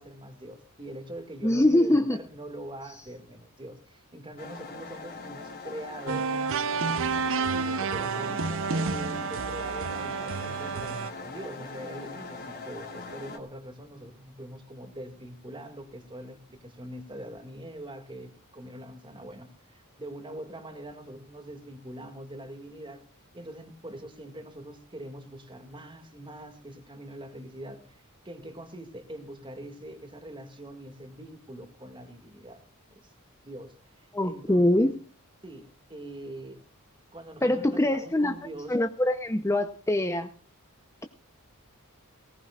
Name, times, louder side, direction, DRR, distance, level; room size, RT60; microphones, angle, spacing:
voice 1, 0.0-6.3 7.5-23.0 23.3-33.1 33.4-34.9 35.4-36.6 37.1-38.7, right 1 dB, 20° right, 2.0 m, -43 dB
voice 2, 1.4-2.2 34.1-34.9 37.4-38.3 38.7-40.3, left 1 dB, 15° left, 0.7 m, -23 dB
sound 1, 4.4-13.4, left 4 dB, 45° left, 2.9 m, -41 dB
sound 2, 6.1-11.1, right 5 dB, 65° right, 0.7 m, -30 dB
19.0 x 18.5 x 2.4 m
head